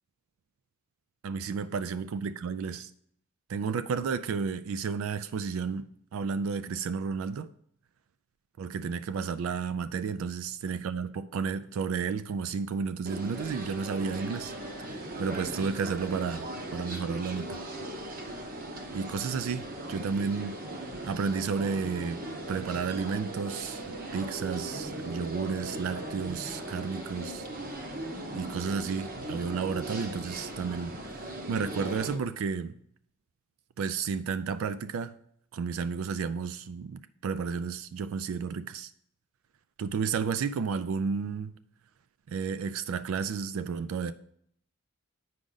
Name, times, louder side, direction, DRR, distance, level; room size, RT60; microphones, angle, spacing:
voice 1, 1.2-2.9 3.5-7.5 8.6-14.5 15.2-17.6 18.9-20.6 21.0-22.2 22.5-27.5 28.3-30.9 31.5-32.8 33.8-35.2 35.5-38.9 39.8-41.5 42.3-44.1, right 5 dB, 65° right, 0.3 m, -32 dB
sound 1, 13.0-32.1, right 1 dB, 40° right, 0.9 m, -38 dB
8.4 x 5.0 x 3.9 m
head